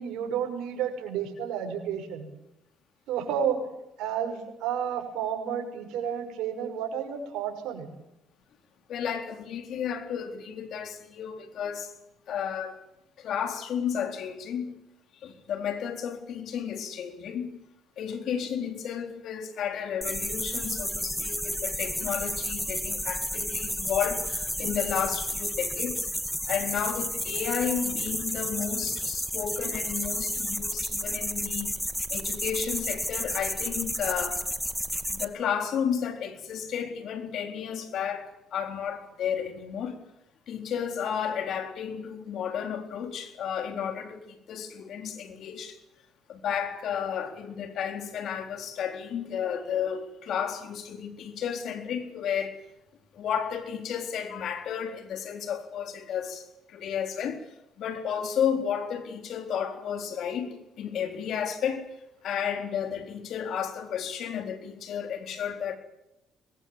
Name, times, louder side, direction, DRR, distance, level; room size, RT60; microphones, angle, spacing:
voice 1, 0.0-2.3 3.1-3.6 4.0-7.9, right 8 dB, 80° right, 6.0 m, -31 dB
voice 2, 8.9-11.9 12.3-12.8 13.2-14.8 15.2-17.6 18.0-26.1 26.5-31.7 32.1-34.5 35.1-40.0 40.5-45.8 46.3-52.6 53.1-56.4 56.7-57.4 57.8-61.9 62.2-65.8, left 8 dB, 65° left, 3.9 m, -32 dB
sound 1, 20.0-35.2, equal, ahead, 2.0 m, -31 dB
24.0 x 21.0 x 7.5 m
supercardioid pair, 80°, 0 cm